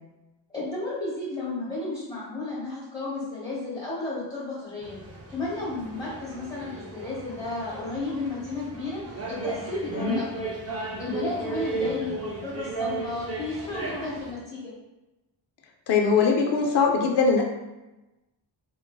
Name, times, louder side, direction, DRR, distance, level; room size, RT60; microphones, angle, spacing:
voice 1, 0.5-5.0 5.3-10.5 11.0-14.7, left 2 dB, 10° left, -9 dB, 0.9 m, -33 dB
sound 1, 4.8-14.3, right 3 dB, 35° right, 0.4 m, -35 dB
voice 2, 15.9-17.4, left 5 dB, 60° left, 2 dB, 0.6 m, -22 dB
3.9 x 2.2 x 2.2 m, 1.0 s
wide cardioid pair, 155°, 47 cm